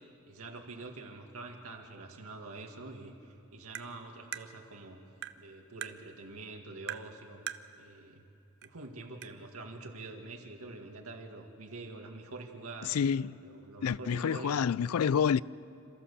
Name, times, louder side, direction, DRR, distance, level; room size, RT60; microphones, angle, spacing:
voice 1, 0.0-5.0 5.4-8.2 8.6-13.1 13.4-14.7, right 3 dB, 85° right, 2.1 m, -46 dB
Tap, 3.7-3.9 4.3-4.5 5.2-5.4 5.8-6.0 6.9-7.1 7.5-7.7 8.6-8.7 9.2-9.3, right 11 dB, 55° right, 0.6 m, -39 dB
voice 2, 12.8-13.4 13.8-15.4, left 7 dB, 80° left, 0.4 m, -28 dB
27.5 x 14.0 x 6.9 m
head